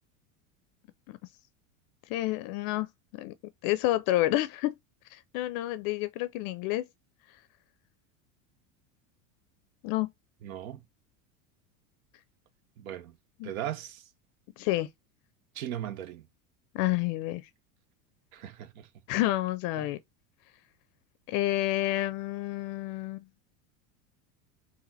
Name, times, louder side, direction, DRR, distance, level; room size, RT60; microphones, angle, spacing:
voice 1, 2.1-3.3 3.6-4.7 5.1-6.8 9.8-10.1 13.4-13.5 14.6-14.9 16.7-17.4 19.1-20.0 21.3-23.3, left 16 dB, 55° left, 0.5 m, -29 dB
voice 2, 10.4-10.8 12.8-13.1 13.4-14.0 15.6-16.2 18.3-18.9 19.8-19.9, right 11 dB, 85° right, 0.8 m, -38 dB
4.1 x 2.5 x 4.0 m
supercardioid pair, 115°, 41 cm